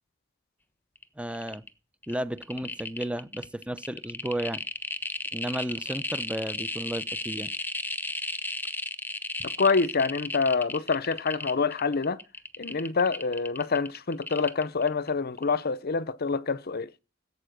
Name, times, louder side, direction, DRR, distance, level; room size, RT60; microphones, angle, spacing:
sound 1, 1.0-1.1 1.3-1.7 2.0-15.1 15.4-15.5, left 2 dB, 10° left, 1.1 m, -34 dB
voice 1, 1.2-1.6 2.1-4.6 5.3-7.5, right 1 dB, 5° right, 0.7 m, -33 dB
voice 2, 9.4-12.2 12.6-16.9, left 4 dB, 50° left, 0.7 m, -26 dB
16.5 x 8.4 x 6.5 m
head